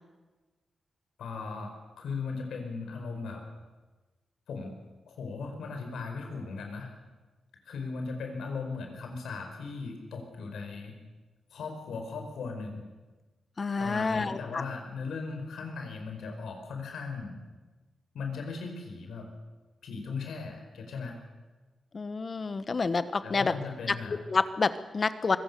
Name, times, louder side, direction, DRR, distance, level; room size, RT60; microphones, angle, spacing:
voice 1, 1.2-3.4 4.5-4.7 5.1-6.9 7.6-10.9 11.5-12.9 13.8-17.4 18.1-19.3 19.8-21.2 23.2-24.2, left 4 dB, 90° left, 3 dB, 4.8 m, -37 dB
voice 2, 13.6-14.6 21.9-23.5 23.9-24.0 24.3-25.4, left 4 dB, 40° left, 13 dB, 1.2 m, -28 dB
24.5 x 17.0 x 6.9 m, 1.2 s
cardioid pair, 85°, 0 cm